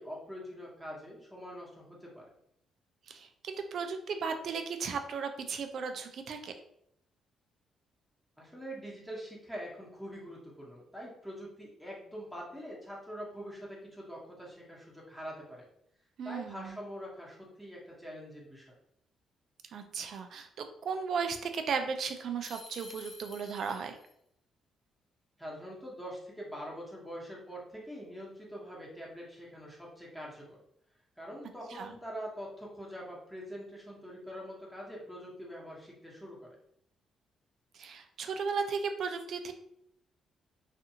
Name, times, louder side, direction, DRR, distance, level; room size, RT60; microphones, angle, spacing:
voice 1, 0.0-2.3 8.4-15.6 16.2-18.7 25.4-30.6 31.2-36.6, equal, ahead, -4 dB, 0.9 m, -44 dB
voice 2, 3.1-6.5 16.2-16.7 19.7-24.0 31.7-31.9 37.7-39.5, right 5 dB, 65° right, 7 dB, 0.4 m, -35 dB
sound 1, 22.4-24.1, left 3 dB, 55° left, 0.8 m, -50 dB
2.5 x 2.5 x 2.8 m, 0.75 s
cardioid pair, 90°, 0 cm